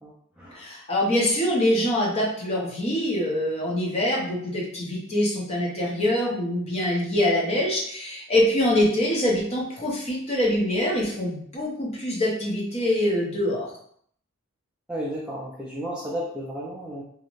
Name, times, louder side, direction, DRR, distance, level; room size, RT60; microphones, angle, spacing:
voice 1, 0.0-0.7 14.9-17.0, equal, 5° right, -6 dB, 0.3 m, -33 dB
voice 2, 0.5-13.7, left 1 dB, 30° left, -3 dB, 0.7 m, -24 dB
2.4 x 2.1 x 3.0 m, 0.65 s
head